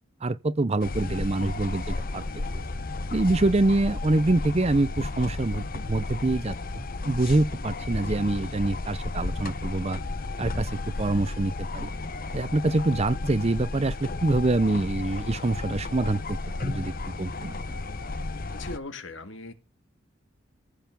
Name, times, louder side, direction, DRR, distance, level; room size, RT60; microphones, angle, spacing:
voice 1, 0.2-2.2 3.1-10.0 10.4-11.9 12.3-17.5, right 2 dB, 30° right, 0.6 m, -25 dB
sound 1, 0.8-18.8, left 2 dB, 45° left, 0.9 m, -33 dB
voice 2, 18.5-19.5, left 2 dB, 70° left, 2.0 m, -39 dB
15.0 x 5.7 x 7.0 m
head